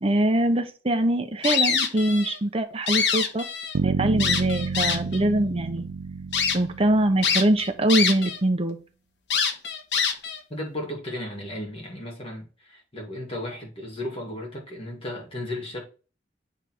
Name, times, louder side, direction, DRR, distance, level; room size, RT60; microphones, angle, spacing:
voice 1, 0.0-3.4 3.8-5.9 6.5-8.8, right 1 dB, 35° right, 0.9 m, -23 dB
sound 1, 1.4-2.4 2.7-3.8 4.2-5.2 5.8-5.9 6.3-6.6 7.2-8.4 8.7-8.8 9.3-10.4, left 6 dB, 75° left, 1.2 m, -24 dB
Bass guitar, 3.7-7.8, right 5 dB, 85° right, 0.4 m, -30 dB
voice 2, 10.5-15.8, left 1 dB, 35° left, 2.1 m, -35 dB
9.2 x 3.5 x 4.6 m
head